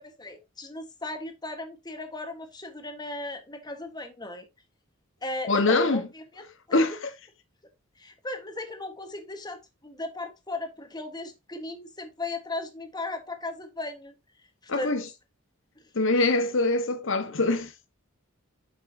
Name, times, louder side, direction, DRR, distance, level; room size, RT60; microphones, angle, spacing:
voice 1, 0.2-4.5 5.2-7.0 8.0-14.1 14.6-15.0 15.8-15.9, left 2 dB, 20° left, 1.5 m, -36 dB
voice 2, 5.5-6.0 6.7-6.9 14.7-15.0 15.9-17.7, left 2 dB, 65° left, 1.3 m, -23 dB
9.1 x 6.4 x 2.8 m
head